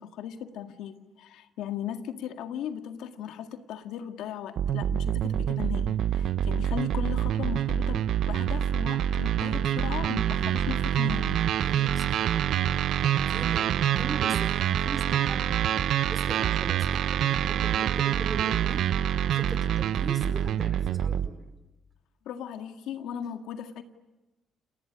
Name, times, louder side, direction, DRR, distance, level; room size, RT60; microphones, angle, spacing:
voice 1, 0.0-11.4 22.3-23.8, left 9 dB, 90° left, 7 dB, 1.9 m, -37 dB
sound 1, 4.6-21.3, right 10 dB, 75° right, 0.9 m, -26 dB
voice 2, 11.7-18.9 19.3-21.4, right 3 dB, 30° right, 9 dB, 5.0 m, -40 dB
29.5 x 20.5 x 9.6 m, 1.1 s
cardioid pair, 90°, 0 cm